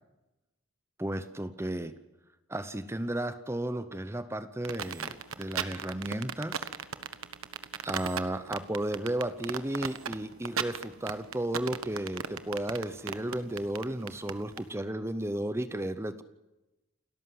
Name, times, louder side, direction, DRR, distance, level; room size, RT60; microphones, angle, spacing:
voice 1, 1.0-1.9 2.5-6.7 7.8-16.2, right 1 dB, 10° right, 12 dB, 0.8 m, -34 dB
sound 1, 4.6-14.6, right 6 dB, 90° right, 1.3 m, -35 dB
29.5 x 13.5 x 9.5 m, 1.0 s
head